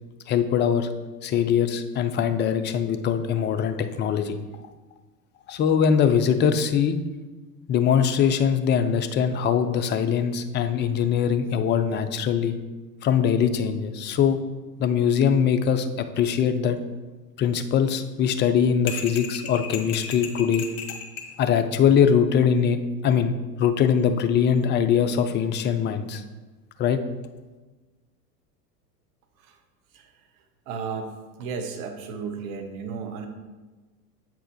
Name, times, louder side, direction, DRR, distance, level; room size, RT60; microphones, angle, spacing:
voice 1, 0.3-0.9 1.2-4.4 5.5-7.0 7.7-12.5 13.0-14.4 14.8-16.8 17.4-20.7 21.4-22.8 23.0-26.2 26.8-27.0, left 7 dB, 25° left, 8 dB, 0.4 m, -22 dB
sound 1, 18.9-21.3, left 6 dB, 45° left, 1.3 m, -35 dB
voice 2, 30.7-31.1 31.4-33.3, right 5 dB, 55° right, 6 dB, 1.0 m, -33 dB
7.6 x 4.6 x 4.5 m, 1.2 s
figure-of-eight pair, 80°, 49 cm